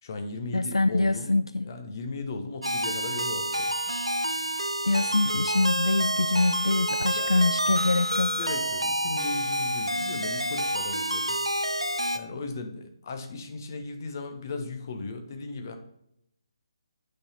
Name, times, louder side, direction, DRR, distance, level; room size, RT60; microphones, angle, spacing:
voice 1, 0.0-3.7 7.0-7.5 8.3-11.4 11.9-15.8, left 3 dB, 40° left, 6 dB, 1.2 m, -37 dB
voice 2, 0.5-1.7 4.8-8.4, left 2 dB, 75° left, 14 dB, 0.3 m, -25 dB
sound 1, 2.6-12.2, right 1 dB, 90° right, 0.7 m, -28 dB
8.5 x 5.8 x 4.2 m, 0.76 s
figure-of-eight pair, 140°, 3 cm